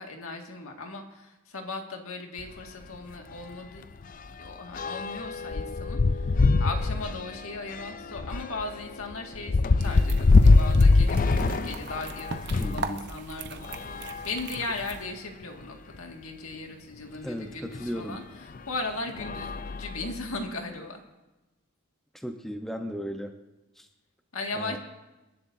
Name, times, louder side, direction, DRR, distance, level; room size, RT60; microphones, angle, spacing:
voice 1, 0.0-3.8 4.4-9.6 9.8-18.2 18.7-21.0 24.3-24.8, left 3 dB, 75° left, 3 dB, 2.0 m, -37 dB
sound 1, 2.4-2.6 2.9-3.1 3.4-12.9 13.6-14.9 15.6-15.7 16.0-16.1 17.7-17.8 18.5-18.8 19.2-20.4, left 3 dB, 40° left, 0.4 m, -24 dB
sound 2, 9.8-15.1, right 3 dB, 50° right, 1.0 m, -39 dB
voice 2, 12.6-13.1 17.2-18.2 22.1-23.3 23.8-23.9 24.5-24.8, equal, ahead, 4 dB, 0.9 m, -35 dB
28.5 x 11.0 x 2.7 m, 1.1 s
head